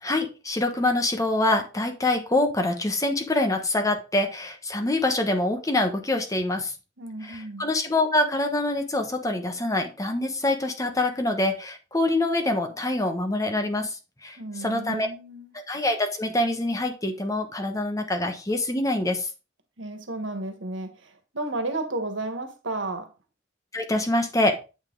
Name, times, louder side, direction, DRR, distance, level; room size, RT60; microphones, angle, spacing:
voice 1, 0.0-6.7 7.2-15.1 15.7-19.3 23.7-24.6, left 2 dB, 20° left, 1.3 m, -25 dB
voice 2, 7.0-7.7 14.4-15.5 19.8-23.1, right 2 dB, 90° right, 1.5 m, -33 dB
8.2 x 5.7 x 3.9 m
head